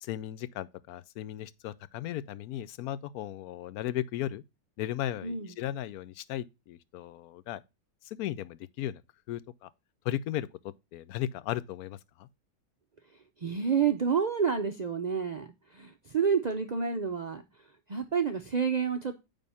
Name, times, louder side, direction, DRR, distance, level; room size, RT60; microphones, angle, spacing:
voice 1, 0.0-4.4 4.8-7.6 8.0-9.0 9.3-9.7 10.0-12.3, left 12 dB, 90° left, 1.1 m, -36 dB
voice 2, 13.4-17.4 17.9-19.1, right 6 dB, 55° right, 0.4 m, -29 dB
9.0 x 3.5 x 5.5 m
omnidirectional pair, 1.5 m